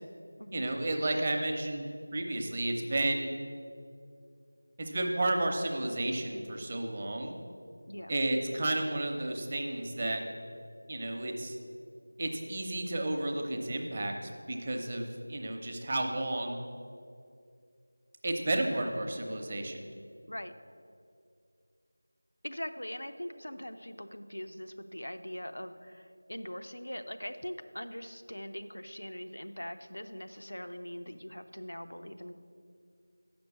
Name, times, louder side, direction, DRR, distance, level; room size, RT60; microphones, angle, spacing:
voice 1, 0.5-3.3 4.8-7.4 8.1-10.2 10.9-11.6 12.2-16.6 18.2-19.9, right 1 dB, 30° right, 2 dB, 0.8 m, -32 dB
voice 2, 22.4-32.3, equal, 75° left, 7 dB, 0.6 m, -42 dB
7.8 x 6.1 x 7.2 m, 2.4 s
figure-of-eight pair, 170°, 0 cm